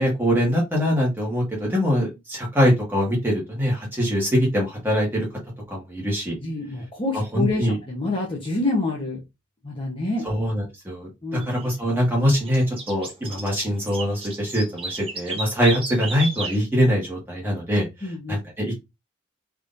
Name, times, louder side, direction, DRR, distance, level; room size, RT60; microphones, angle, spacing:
voice 1, 0.0-5.3 5.7-6.3 7.1-7.8 10.2-18.8, equal, 10° right, -3 dB, 1.6 m, -23 dB
voice 2, 6.4-9.2 9.6-10.3 11.2-11.5 18.0-18.4, left 2 dB, 25° left, -2 dB, 0.9 m, -27 dB
sound 1, 11.4-11.7 12.3-16.6, right 3 dB, 30° right, 1.1 m, -33 dB
3.6 x 3.2 x 2.6 m, 0.22 s
head